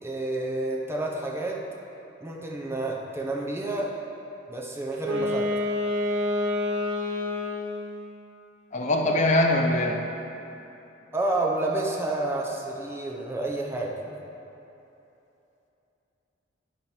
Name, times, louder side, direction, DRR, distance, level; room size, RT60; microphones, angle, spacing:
voice 1, 0.0-1.6 2.2-4.0 4.5-5.5 11.1-14.2, right 2 dB, 15° right, -1 dB, 0.7 m, -29 dB
Wind instrument woodwind instrument, 4.9-7.9, left 2 dB, 65° right, 0.8 m, -27 dB
voice 2, 8.7-10.1, left 1 dB, 40° left, 2 dB, 0.6 m, -22 dB
9.6 x 5.7 x 4.4 m, 2.9 s
head